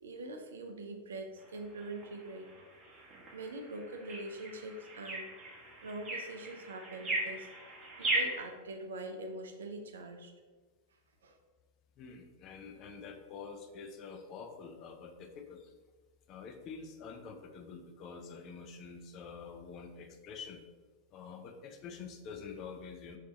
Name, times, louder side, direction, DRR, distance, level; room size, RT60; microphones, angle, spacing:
voice 1, 0.0-2.5 3.3-5.3 5.8-7.5 8.0-10.3 11.2-11.4, right 2 dB, 65° right, 5 dB, 0.5 m, -43 dB
sound 1, 1.4-8.4, right 2 dB, 20° right, 1.2 m, -39 dB
voice 2, 12.0-15.7 16.3-20.6 21.1-23.2, left 5 dB, 35° left, 6 dB, 0.4 m, -47 dB
3.3 x 3.2 x 4.0 m, 1.3 s
figure-of-eight pair, 90°, 0 cm